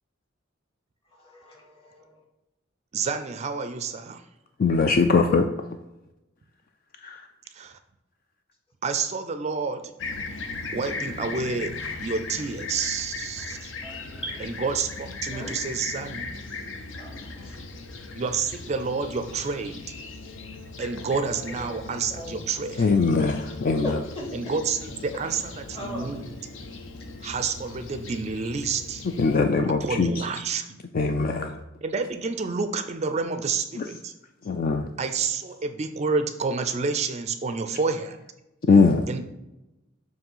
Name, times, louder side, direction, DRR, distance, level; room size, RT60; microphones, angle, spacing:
voice 1, 1.1-2.2 11.5-11.6 13.8-14.4 15.3-15.5 17.0-17.6 21.3-21.8 22.1-22.4 22.8-22.9 23.3-23.5 23.8-24.3 25.1-25.4 25.7-26.1, left 1 dB, 30° left, -2 dB, 1.7 m, -39 dB
voice 2, 2.9-4.2 7.5-7.8 8.8-9.9 10.7-13.7 14.4-16.4 18.2-19.9 20.8-22.9 24.3-25.4 25.7-26.3 27.2-29.1 29.8-30.8 31.8-34.1 35.0-38.2 39.1-39.2, right 4 dB, 35° right, 9 dB, 0.4 m, -29 dB
voice 3, 4.6-5.5 7.0-7.2 22.8-24.0 29.2-30.2 30.9-31.6 33.8-33.9 34.4-34.9 38.7-39.1, left 4 dB, 45° left, 5 dB, 0.4 m, -21 dB
Fixed-wing aircraft airplane, 10.0-29.4, left 3 dB, 65° left, 0.7 m, -38 dB
7.2 x 3.1 x 5.4 m, 0.97 s
head